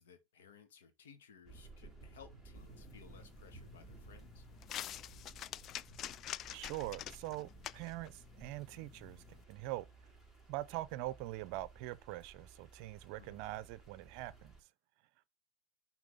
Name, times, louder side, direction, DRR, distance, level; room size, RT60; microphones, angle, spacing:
voice 1, 0.0-4.5 13.2-13.4, left 7 dB, 80° left, 2.1 m, -59 dB
sound 1, 1.4-14.6, right 3 dB, 15° left, 4.0 m, -57 dB
sound 2, 2.6-9.4, left 12 dB, 35° left, 0.3 m, -48 dB
voice 2, 6.5-9.9 10.5-14.6, right 17 dB, 55° right, 0.6 m, -43 dB
5.9 x 4.5 x 5.1 m
hypercardioid pair, 125°, 0 cm